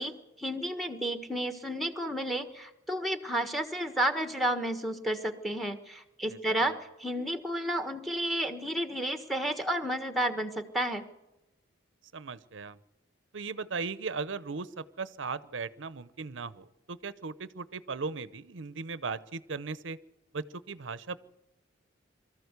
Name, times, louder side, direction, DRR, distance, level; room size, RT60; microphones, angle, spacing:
voice 1, 0.0-11.0, right 1 dB, ahead, 8 dB, 1.4 m, -31 dB
voice 2, 6.3-6.6 12.1-12.8 13.3-20.0 20.3-21.2, right 4 dB, 85° right, 17 dB, 0.8 m, -37 dB
23.5 x 14.0 x 8.2 m, 0.97 s
head